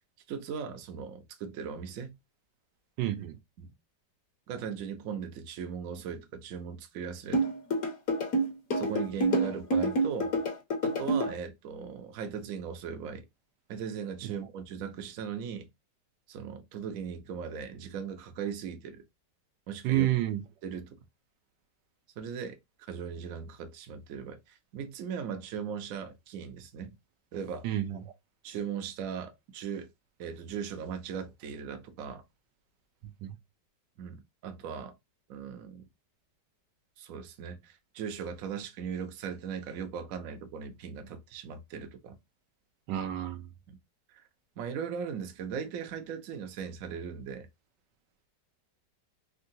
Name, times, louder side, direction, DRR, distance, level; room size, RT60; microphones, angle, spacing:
voice 1, 0.3-2.1 3.6-3.7 4.5-7.4 8.7-10.3 10.8-13.2 13.7-15.7 16.3-19.0 19.7-20.1 20.6-21.0 22.2-22.6 22.9-24.4 24.7-26.9 27.3-27.7 28.4-29.9 30.2-32.2 34.0-34.9 35.3-35.8 37.0-42.2 43.7-43.8 44.6-47.5, right 7 dB, 60° right, 0.9 m, -38 dB
voice 2, 3.0-3.3 19.8-20.4 27.6-28.0 33.2-33.3 42.9-43.4, right 13 dB, 80° right, 1.2 m, -29 dB
sound 1, 7.3-11.3, right 1 dB, 55° left, 1.4 m, -27 dB
3.6 x 2.2 x 2.6 m
omnidirectional pair, 1.9 m